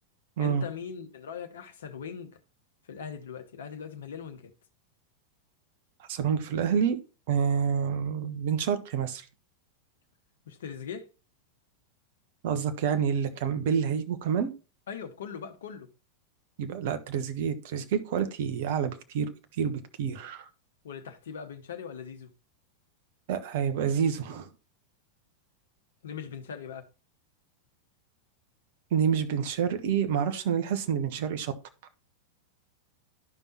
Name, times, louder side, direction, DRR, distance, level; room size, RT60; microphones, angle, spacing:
voice 1, 0.4-2.4 2.9-4.5 10.5-11.1 14.9-15.9 20.8-22.3 26.0-26.9, left 7 dB, 60° left, 1.0 m, -40 dB
voice 2, 6.1-7.0 7.3-9.2 12.4-14.5 16.6-19.3 19.6-20.5 23.3-24.5 28.9-31.5, right 7 dB, 50° right, 1.0 m, -28 dB
12.0 x 5.4 x 2.8 m
figure-of-eight pair, 90°, 0 cm